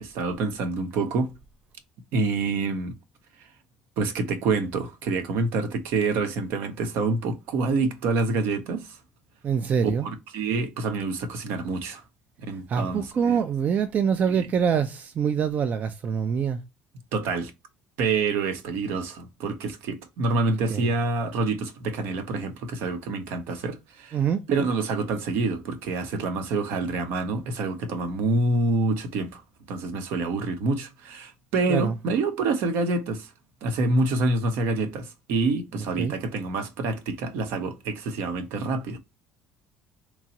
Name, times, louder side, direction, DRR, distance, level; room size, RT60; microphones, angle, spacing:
voice 1, 0.0-1.3 2.1-2.9 4.0-9.0 10.0-12.0 12.4-13.4 14.3-14.5 17.1-17.5 18.0-24.2 24.5-29.4 29.7-33.3 33.6-39.0, right 3 dB, 70° right, 0.7 m, -27 dB
voice 2, 9.4-10.1 12.7-16.6 20.7-20.9 24.1-24.4 31.7-32.0 36.0-36.1, right 7 dB, 45° right, 0.4 m, -25 dB
3.0 x 2.2 x 2.8 m
supercardioid pair, 80°, 4 cm